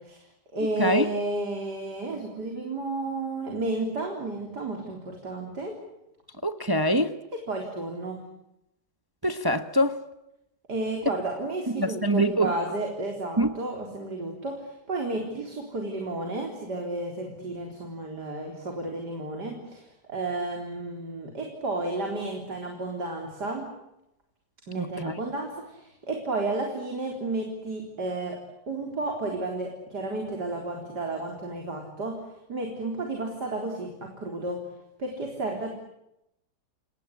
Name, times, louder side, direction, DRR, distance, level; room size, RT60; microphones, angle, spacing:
voice 1, 0.0-5.8 7.3-8.2 10.7-23.7 24.7-28.4 28.7-32.2 32.5-34.6 35.0-35.7, right 2 dB, 70° right, 2 dB, 4.5 m, -32 dB
voice 2, 6.4-7.1 9.2-10.0 11.8-12.5 13.4-13.5 24.8-25.1, equal, 15° right, 10 dB, 1.1 m, -24 dB
28.5 x 19.5 x 10.0 m, 0.86 s
omnidirectional pair, 1.8 m